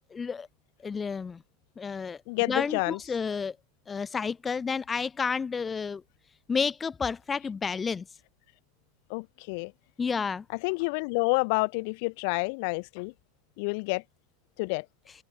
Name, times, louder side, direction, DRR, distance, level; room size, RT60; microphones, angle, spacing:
voice 1, 0.1-0.5 0.8-1.4 1.8-2.2 2.5-3.6 3.9-6.0 6.5-8.1 10.0-10.4, left 5 dB, 20° left, 2.6 m, -30 dB
voice 2, 2.3-3.0 9.1-9.7 10.6-13.1 13.6-14.0 14.6-14.9, left 32 dB, 60° left, 4.1 m, -29 dB
supercardioid pair, 115°, 0 cm